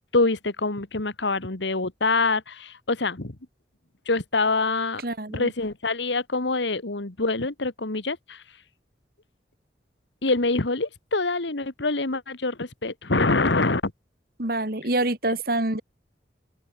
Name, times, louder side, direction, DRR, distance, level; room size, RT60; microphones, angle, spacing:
voice 1, 0.1-3.4 4.1-5.0 5.3-8.4 10.2-13.9, left 3 dB, 80° left, 1.8 m, -25 dB
voice 2, 5.0-5.5 14.4-15.8, right 2 dB, 55° right, 2.9 m, -26 dB
open air
head